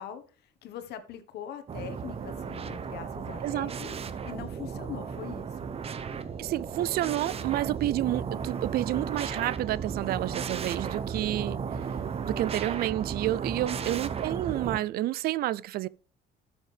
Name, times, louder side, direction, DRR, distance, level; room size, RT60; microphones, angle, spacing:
voice 1, 0.0-5.7 13.5-13.9, left 9 dB, 75° left, 1.4 m, -42 dB
sound 1, 1.7-14.8, right 6 dB, 35° right, 0.8 m, -35 dB
voice 2, 6.4-11.6 12.2-15.9, right 14 dB, 65° right, 0.4 m, -29 dB
12.5 x 7.3 x 3.4 m
cardioid pair, 110°, 17 cm